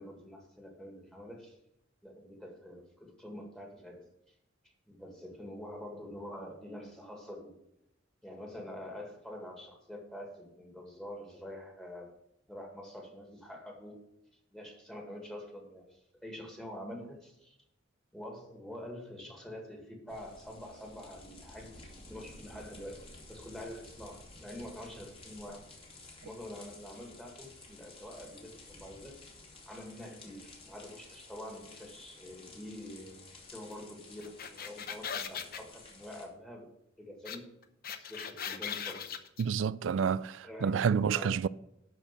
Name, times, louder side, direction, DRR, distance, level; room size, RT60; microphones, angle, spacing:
voice 1, 0.0-1.6 2.0-4.1 4.9-7.5 8.2-12.1 12.5-14.0 14.5-17.6 18.1-25.7 26.2-29.2 29.7-36.7 37.0-37.5 37.9-39.0 40.4-41.4, left 1 dB, 5° left, 2.0 m, -46 dB
sound 1, 20.1-36.3, left 2 dB, 30° left, 2.2 m, -53 dB
sound 2, 34.2-35.6 37.3-37.4 37.6-39.4, left 8 dB, 50° left, 0.8 m, -39 dB
voice 2, 39.4-41.5, right 7 dB, 75° right, 0.4 m, -29 dB
12.0 x 4.6 x 7.3 m
head